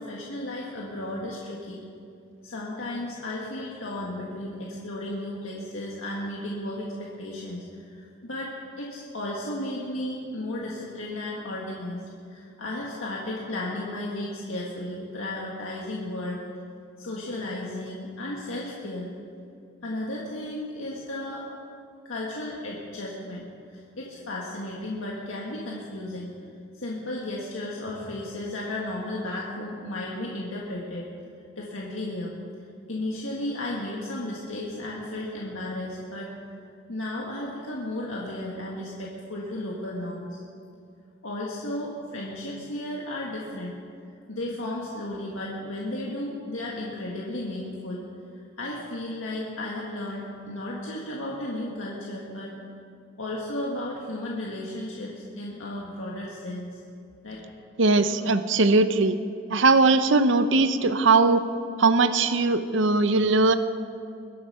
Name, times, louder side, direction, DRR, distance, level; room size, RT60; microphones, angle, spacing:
voice 1, 0.0-1.8 2.4-16.4 17.0-19.1 19.8-21.5 22.1-23.4 23.7-26.3 26.7-31.1 31.6-32.3 32.9-36.3 36.9-40.4 41.2-43.8 44.3-48.0 48.3-52.5 53.2-56.8 57.2-57.4, left 1 dB, 90° left, -4 dB, 1.8 m, -34 dB
voice 2, 57.8-59.2 59.5-61.4 61.8-63.6, right 3 dB, 70° right, 11 dB, 0.7 m, -20 dB
22.5 x 8.1 x 5.5 m, 2.4 s
head